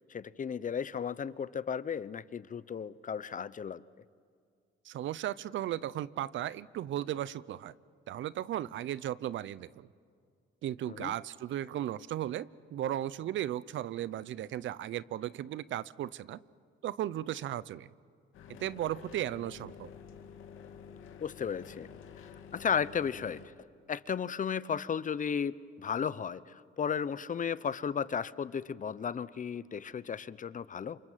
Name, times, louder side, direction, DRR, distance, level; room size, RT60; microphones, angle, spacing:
voice 1, 0.1-3.8 10.9-11.1 21.2-21.9 22.5-23.4 23.9-31.0, left 7 dB, 40° left, 17 dB, 0.9 m, -34 dB
voice 2, 4.8-7.7 8.1-9.9 10.6-16.4 16.8-17.9 18.5-19.9, right 12 dB, 75° right, 19 dB, 0.8 m, -36 dB
sound 1, 18.3-23.5, left 7 dB, 85° left, 2.4 m, -50 dB
28.5 x 25.5 x 7.5 m, 2.2 s
cardioid pair, 90°, 20 cm